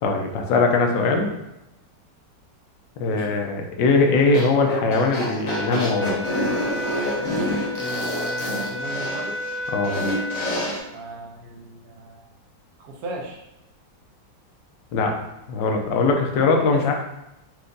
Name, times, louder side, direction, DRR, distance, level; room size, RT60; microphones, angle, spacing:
voice 1, 0.0-1.3 3.0-6.1 9.7-10.0 14.9-15.1 15.5-16.9, left 3 dB, 80° left, 3 dB, 1.4 m, -21 dB
sound 1, 4.3-10.8, left 1 dB, 45° left, 1.2 m, -28 dB
sound 2, 5.5-10.6, left 2 dB, 80° right, 1.6 m, -31 dB
voice 2, 7.8-9.4 10.9-12.3 12.8-13.4 16.7-16.9, right 2 dB, 60° right, 0 dB, 1.2 m, -36 dB
4.5 x 2.6 x 3.8 m, 0.89 s
omnidirectional pair, 2.0 m